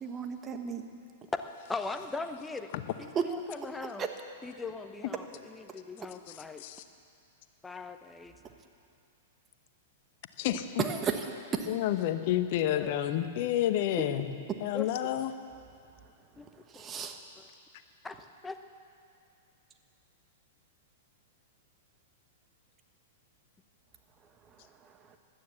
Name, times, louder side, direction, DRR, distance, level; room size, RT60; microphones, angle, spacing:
voice 1, 0.0-0.8 3.1-3.2 4.0-4.1 10.8-11.3 11.5-11.7 16.7-17.2 25.1-25.2, right 6 dB, 25° right, 5 dB, 1.4 m, -32 dB
voice 2, 1.7-2.7 3.0-4.1 4.4-6.6 7.6-8.3 12.8-12.9 14.7-15.1 16.4-16.5 16.7-16.8 17.4-17.5 18.0-18.2 18.4-18.6, left 3 dB, 10° left, 8 dB, 0.9 m, -40 dB
voice 3, 6.3-6.8 10.4-10.8 11.7-15.3, left 12 dB, 50° left, 10 dB, 1.0 m, -30 dB
16.0 x 12.0 x 7.0 m, 2.4 s
figure-of-eight pair, 105°, 0 cm